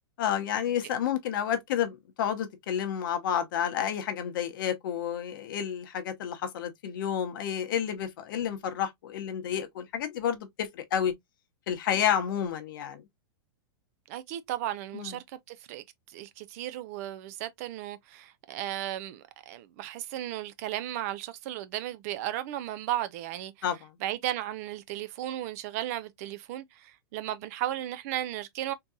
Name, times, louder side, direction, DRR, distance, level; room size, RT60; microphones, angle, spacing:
voice 1, 0.2-11.1 11.7-13.0 14.9-15.1 23.6-23.9, left 9 dB, 55° left, 0.9 m, -30 dB
voice 2, 14.1-23.5 24.0-28.7, right 13 dB, 40° right, 0.4 m, -35 dB
3.7 x 2.8 x 2.3 m
supercardioid pair, 160°, 13 cm